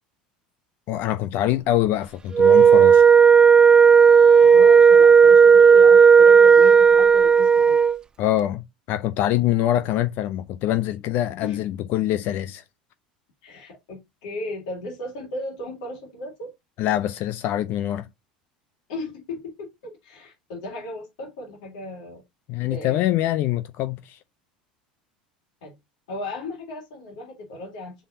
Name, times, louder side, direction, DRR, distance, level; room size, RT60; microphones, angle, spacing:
voice 1, 0.9-3.0 8.2-12.6 16.8-18.1 22.5-24.2, left 13 dB, 50° left, 0.5 m, -24 dB
Wind instrument woodwind instrument, 2.3-8.0, right 6 dB, 20° right, 0.5 m, -12 dB
voice 2, 4.4-7.8 11.4-11.6 13.4-16.5 18.9-22.2 22.7-23.0 25.6-25.7 26.1-27.9, left 2 dB, 65° left, 3.0 m, -35 dB
7.0 x 5.0 x 2.8 m
figure-of-eight pair, 75°, 4 cm